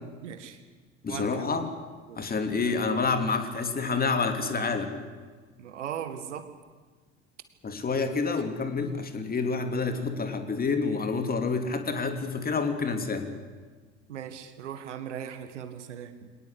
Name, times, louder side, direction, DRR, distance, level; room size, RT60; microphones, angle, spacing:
voice 1, 0.2-0.6 1.1-1.6 2.1-2.3 5.6-6.5 8.2-8.3 14.1-16.3, right 9 dB, 70° right, 10 dB, 1.9 m, -38 dB
voice 2, 1.0-1.7 2.2-4.9 7.6-13.3, left 4 dB, 25° left, 7 dB, 3.0 m, -28 dB
25.5 x 19.0 x 8.2 m, 1.4 s
figure-of-eight pair, 65°, 36 cm